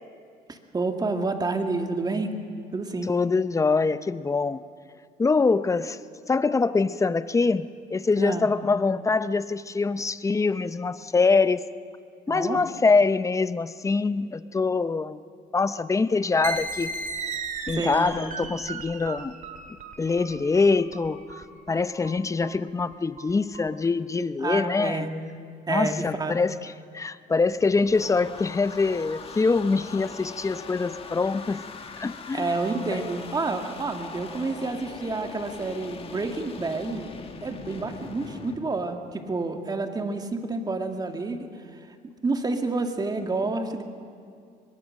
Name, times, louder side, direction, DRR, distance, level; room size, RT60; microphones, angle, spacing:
voice 1, 0.5-2.3 2.7-3.1 8.2-8.5 12.3-12.6 17.7-18.1 24.4-25.1 25.7-26.4 32.3-37.1 37.4-43.8, right 3 dB, 25° right, 6 dB, 2.0 m, -29 dB
voice 2, 3.1-4.6 5.2-6.0 6.3-11.6 12.3-15.2 15.5-16.9 17.7-19.3 20.0-21.2 21.7-25.1 25.7-31.6 32.0-32.5, left 4 dB, 20° left, 14 dB, 0.7 m, -24 dB
sound 1, 16.4-23.7, right 4 dB, 45° right, 2.1 m, -36 dB
sound 2, 27.3-38.6, left 5 dB, 35° left, 1.9 m, -41 dB
23.5 x 21.5 x 6.5 m, 2.3 s
cardioid pair, 110°, 17 cm